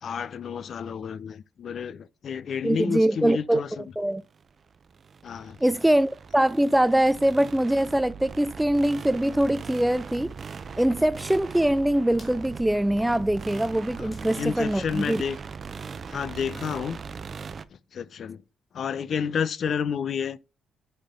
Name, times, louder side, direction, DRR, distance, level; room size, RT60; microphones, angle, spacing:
voice 1, 0.0-3.8 5.2-5.6 14.0-14.1 14.4-15.4 16.1-17.0 17.9-18.4 18.7-20.4, left 7 dB, 55° left, 0.6 m, -30 dB
voice 2, 2.6-4.2 5.6-10.3 10.8-15.2, right 1 dB, 5° right, 0.3 m, -23 dB
sound 1, 4.3-17.6, right 5 dB, 45° right, 0.6 m, -40 dB
sound 2, 8.9-14.4, left 2 dB, 15° left, 2.5 m, -57 dB
10.5 x 4.3 x 3.7 m
cardioid pair, 90°, 0 cm